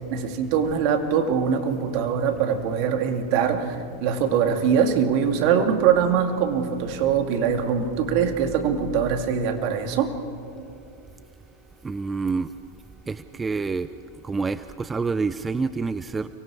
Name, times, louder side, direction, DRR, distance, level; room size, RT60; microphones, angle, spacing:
voice 1, 0.1-10.1, right 7 dB, 55° right, 6 dB, 2.2 m, -23 dB
voice 2, 11.8-12.5 13.1-13.9 14.2-16.3, right 4 dB, 15° right, 13 dB, 0.5 m, -27 dB
30.0 x 24.0 x 4.8 m, 2.6 s
hypercardioid pair, 120°, 0 cm